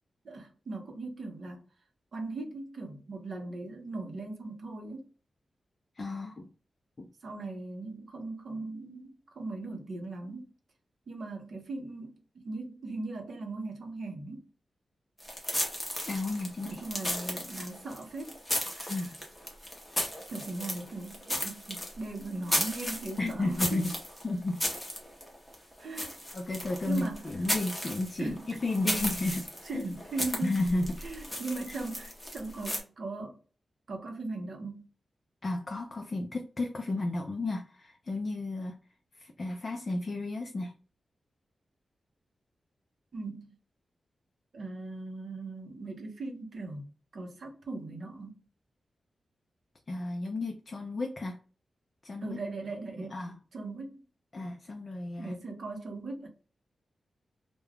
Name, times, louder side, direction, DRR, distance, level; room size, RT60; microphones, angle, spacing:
voice 1, 0.2-1.6 2.1-5.1 7.2-10.5 11.1-14.5 16.6-18.4 18.7-19.1 20.3-23.7 25.8-26.1 26.8-27.2 28.2-28.4 29.6-30.6 31.0-33.4 33.9-34.9 43.1-43.6 44.5-48.4 52.2-53.2 53.5-54.0 55.2-56.3, right 2 dB, 55° right, 0.7 m, -39 dB
voice 2, 6.0-6.5 7.0-7.1 16.1-16.8 18.9-19.1 23.2-23.9 24.2-24.6 26.3-29.5 29.7-29.8 30.4-30.9 35.4-38.8 39.2-40.7 49.9-51.4 52.0-52.4 53.1-53.4 54.3-55.4, left 2 dB, 30° left, 0.4 m, -33 dB
sound 1, 15.2-32.8, equal, 5° left, 0.8 m, -35 dB
2.3 x 2.2 x 3.3 m
wide cardioid pair, 175°, 0 cm